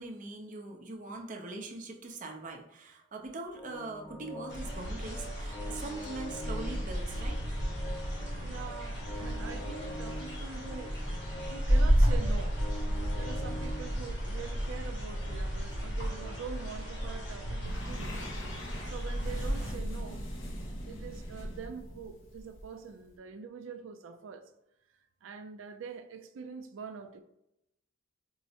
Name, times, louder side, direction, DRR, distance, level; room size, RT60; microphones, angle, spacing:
voice 1, 0.0-7.4, right 2 dB, 45° right, 0.6 m, -42 dB
sound 1, 3.6-17.6, equal, 25° left, 0.6 m, -46 dB
sound 2, 4.5-19.7, equal, 65° left, 1.0 m, -32 dB
voice 2, 8.4-11.0 11.5-12.6 13.2-18.2 18.9-20.2 20.9-24.5 25.2-27.2, right 6 dB, 85° right, 0.4 m, -44 dB
sound 3, 17.6-23.2, equal, 90° left, 0.8 m, -41 dB
4.6 x 2.0 x 2.7 m
head